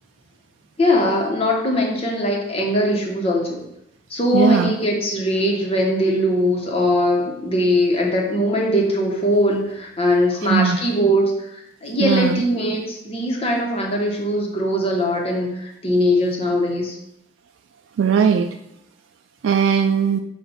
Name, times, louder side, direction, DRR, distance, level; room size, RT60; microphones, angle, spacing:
voice 1, 0.8-3.6 4.1-16.9, left 1 dB, 30° left, -1 dB, 1.1 m, -21 dB
voice 2, 4.3-4.7 10.5-10.8 12.0-12.4 18.0-18.5 19.4-20.2, right 7 dB, 75° right, 5 dB, 0.3 m, -18 dB
6.9 x 2.5 x 5.6 m, 0.80 s
head